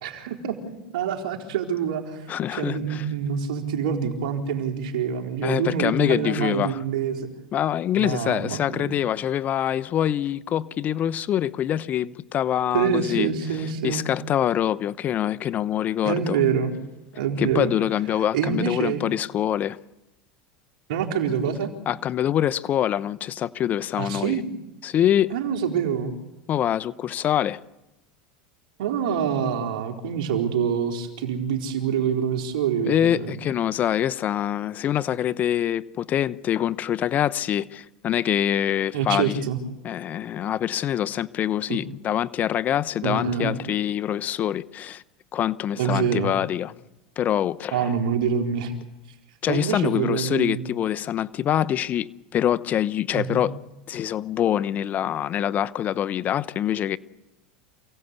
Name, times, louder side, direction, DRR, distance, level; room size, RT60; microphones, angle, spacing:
voice 1, 0.0-2.3 2.5-7.3 8.0-8.9 12.7-14.1 16.0-16.7 17.2-17.7 18.3-19.0 20.9-21.7 24.0-24.5 25.3-26.1 28.8-33.4 38.9-39.6 41.7-41.8 43.0-43.6 45.8-46.3 47.7-48.7 49.5-50.6 53.1-53.4, right 7 dB, 75° right, 4.0 m, -26 dB
voice 2, 2.3-3.0 5.4-6.8 7.5-13.3 13.6-16.4 17.4-19.8 21.9-24.4 24.8-25.3 26.5-27.6 32.8-39.4 39.8-45.0 45.3-46.7 47.2-47.9 49.4-53.6 53.9-57.0, left 10 dB, 40° left, 0.8 m, -25 dB
28.5 x 17.0 x 8.3 m
hypercardioid pair, 105°, 4 cm